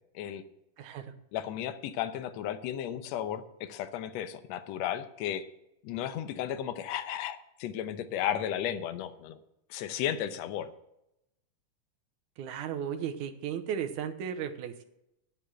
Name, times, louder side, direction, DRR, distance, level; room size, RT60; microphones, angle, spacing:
voice 1, 0.8-1.1 12.4-14.8, right 8 dB, 75° right, 6 dB, 2.3 m, -35 dB
voice 2, 1.3-5.5 5.8-9.4 9.7-10.7, left 10 dB, 70° left, 10 dB, 1.8 m, -34 dB
9.6 x 8.4 x 7.7 m, 0.84 s
omnidirectional pair, 3.7 m